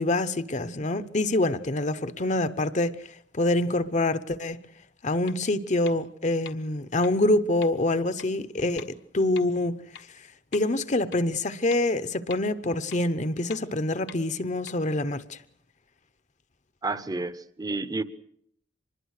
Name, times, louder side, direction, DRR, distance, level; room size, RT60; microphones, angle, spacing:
voice 1, 0.0-3.0 3.3-4.6 5.0-8.8 9.1-9.8 10.5-15.4, left 2 dB, 40° left, 0.9 m, -26 dB
sound 1, 5.3-5.4 5.9-6.0 6.5-6.6 7.0-7.1 7.6-7.7 8.2-8.3 8.8-8.9 9.4-9.5 9.9-10.0 10.5-10.6 11.1-11.2 11.7-11.8 12.3-12.4 12.9-13.0 13.5-13.6 14.1-14.2 14.7-14.8, left 8 dB, 75° left, 1.4 m, -42 dB
voice 2, 16.8-18.0, right 3 dB, 20° right, 0.9 m, -30 dB
25.0 x 21.0 x 6.6 m
head